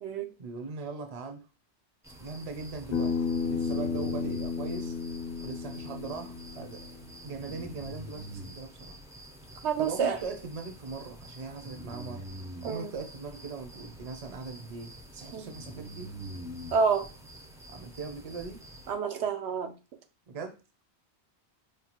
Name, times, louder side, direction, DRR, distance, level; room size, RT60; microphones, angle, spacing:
voice 1, 0.4-1.5 2.2-3.1 3.5-4.9 5.4-9.0 9.8-12.2 12.6-16.1 17.7-18.6 20.3-20.6, right 4 dB, 40° right, 6 dB, 0.6 m, -40 dB
sound 1, 2.0-18.9, right 1 dB, 5° right, 0.3 m, -46 dB
Bass guitar, 2.9-7.2, left 5 dB, 60° left, 0.7 m, -33 dB
voice 2, 9.6-10.2 12.6-12.9 15.3-15.5 16.7-17.1 18.9-19.7, right 5 dB, 85° right, 6 dB, 0.9 m, -28 dB
5.1 x 2.3 x 2.9 m, 0.30 s
omnidirectional pair, 1.1 m